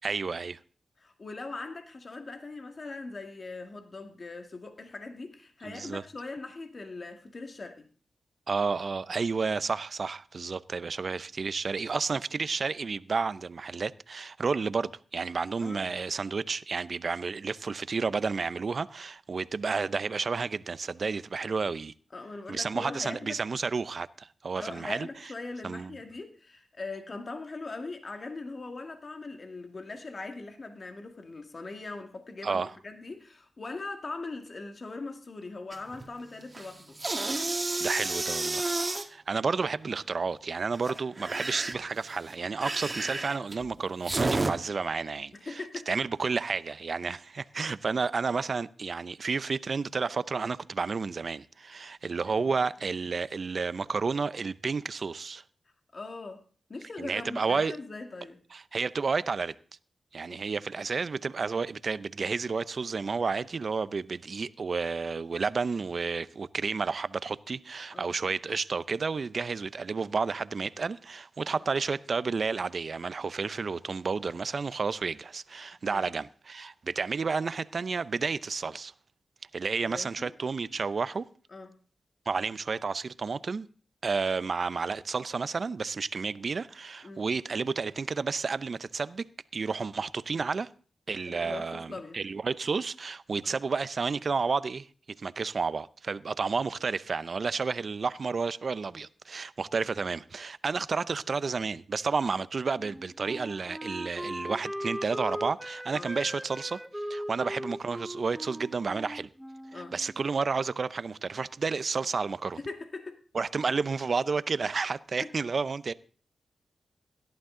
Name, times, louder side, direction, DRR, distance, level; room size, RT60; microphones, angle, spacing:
voice 1, 0.0-0.6 5.6-6.0 8.5-21.9 22.5-25.3 25.6-25.9 32.4-32.7 37.8-38.7 39.0-45.6 45.9-55.4 57.0-57.8 58.5-59.5 60.1-78.9 79.5-81.3 82.3-83.7 84.0-89.3 89.5-90.7 91.1-94.9 95.2-106.8 107.1-109.3 109.7-112.6 113.3-115.9, right 4 dB, 60° right, 0.6 m, -31 dB
voice 2, 1.0-7.9 15.6-15.8 22.1-23.4 24.6-37.0 45.3-45.9 52.2-52.5 55.9-56.4 56.7-58.4 60.3-60.4 67.9-68.1 75.8-76.1 79.8-80.3 81.5-81.8 87.0-87.2 91.3-92.2 93.4-93.5 105.9-106.1 109.7-109.9 112.6-113.2 115.2-115.3, left 3 dB, 50° left, 2.0 m, -41 dB
sound 1, 35.7-36.1 36.4-39.1 40.7-44.5, right 2 dB, 35° right, 1.9 m, -31 dB
Wind instrument woodwind instrument, 102.7-110.2, equal, 5° right, 1.0 m, -39 dB
17.5 x 12.0 x 3.8 m
cardioid pair, 50°, 0 cm